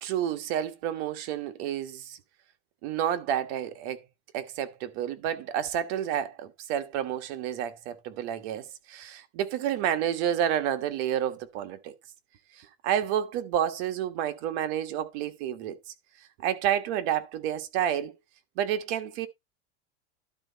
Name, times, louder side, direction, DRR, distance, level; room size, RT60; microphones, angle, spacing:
voice 1, 0.0-2.2 2.8-4.0 4.3-11.9 12.6-15.8 16.4-18.1 18.6-19.3, right 10 dB, 60° right, 1.5 m, -30 dB
12.0 x 4.5 x 4.0 m
supercardioid pair, 135°, 36 cm